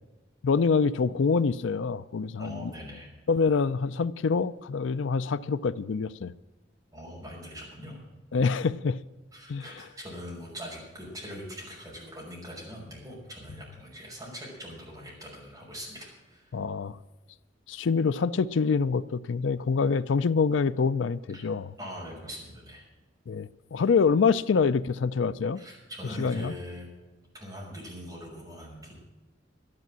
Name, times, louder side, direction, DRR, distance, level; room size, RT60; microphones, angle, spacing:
voice 1, 0.4-2.7 3.3-6.3 8.3-9.0 9.5-9.6 16.5-17.0 17.7-21.7 23.3-25.6 26.2-26.5, left 5 dB, 80° left, 0.4 m, -26 dB
voice 2, 2.4-3.1 6.9-8.0 9.3-16.5 21.3-21.5 21.8-22.9 25.5-26.9 27.4-28.9, equal, 20° right, 5.9 m, -42 dB
12.0 x 11.0 x 7.5 m
head